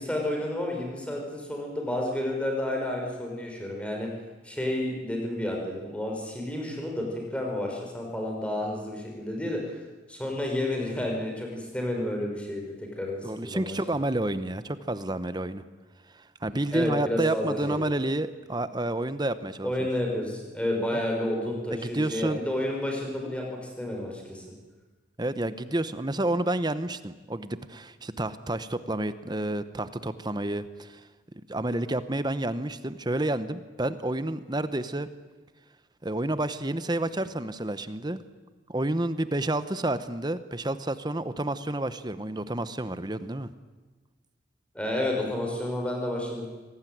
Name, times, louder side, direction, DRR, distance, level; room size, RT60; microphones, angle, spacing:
voice 1, 0.0-4.1 4.4-9.8 10.1-14.0 16.7-17.9 19.6-24.4 44.7-46.5, left 1 dB, 5° left, 0 dB, 5.4 m, -31 dB
voice 2, 13.2-15.6 16.1-19.7 21.7-22.4 25.2-31.0 31.5-35.1 36.0-38.2 38.7-43.5, right 1 dB, 20° right, 13 dB, 1.0 m, -30 dB
25.0 x 18.5 x 9.4 m, 1.3 s
head